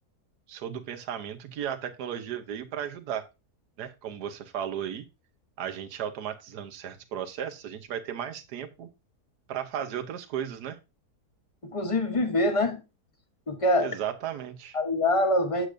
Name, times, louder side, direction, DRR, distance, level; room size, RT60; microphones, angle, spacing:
voice 1, 0.5-3.3 3.8-5.1 5.6-8.9 9.5-10.8 13.8-14.8, right 9 dB, 80° right, 1.4 m, -35 dB
voice 2, 11.6-12.8 13.5-13.9 14.7-15.7, left 1 dB, 25° left, 0.8 m, -25 dB
8.2 x 7.9 x 2.6 m
omnidirectional pair, 1.7 m